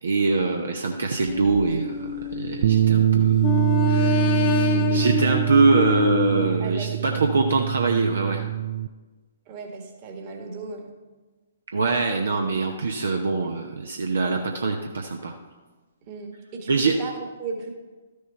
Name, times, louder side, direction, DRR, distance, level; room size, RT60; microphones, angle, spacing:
voice 1, 0.0-8.4 11.7-15.3 16.7-16.9, right 3 dB, 60° right, 3 dB, 0.8 m, -24 dB
sound 1, 1.3-2.9 3.4-6.5, left 7 dB, 30° left, 0.9 m, -27 dB
Bass guitar, 2.6-8.9, right 12 dB, 45° right, 0.3 m, -23 dB
voice 2, 4.7-5.1 6.6-7.1 9.5-10.9 16.0-17.7, right 4 dB, 30° right, 2 dB, 1.6 m, -36 dB
13.0 x 6.7 x 4.4 m, 1.3 s
figure-of-eight pair, 125°, 0 cm